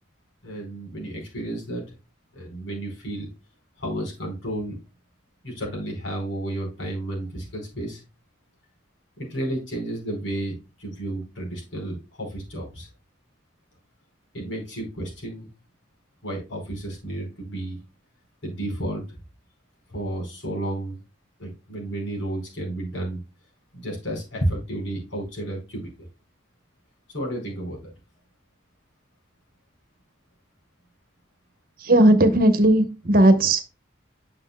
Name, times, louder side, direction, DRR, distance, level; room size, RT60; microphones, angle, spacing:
voice 1, 0.4-1.9 2.3-3.3 3.8-4.8 5.4-8.0 9.2-12.9 14.3-15.5 16.2-17.8 18.4-19.2 19.9-21.0 21.4-23.2 23.7-25.9 27.1-27.9, right 1 dB, 80° left, -1 dB, 4.7 m, -32 dB
voice 2, 31.8-33.7, right 1 dB, 45° right, 9 dB, 1.0 m, -17 dB
9.6 x 6.6 x 2.3 m, 0.28 s
head